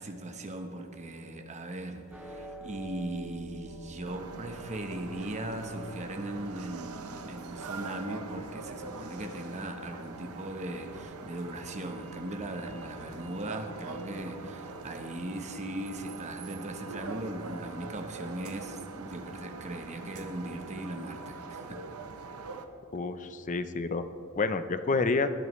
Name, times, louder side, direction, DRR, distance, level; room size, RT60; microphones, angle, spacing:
voice 1, 0.0-21.8, right 1 dB, 35° right, 5 dB, 1.0 m, -38 dB
sound 1, 2.1-8.6, right 2 dB, 5° right, 1.2 m, -49 dB
Wind instrument woodwind instrument, 3.6-10.4, left 4 dB, 80° left, 1.2 m, -55 dB
sound 2, 4.0-22.7, right 4 dB, 85° right, 0.8 m, -44 dB
voice 2, 22.9-24.1 24.4-25.3, left 3 dB, 35° left, 11 dB, 0.5 m, -29 dB
20.0 x 11.0 x 3.1 m, 2.8 s
head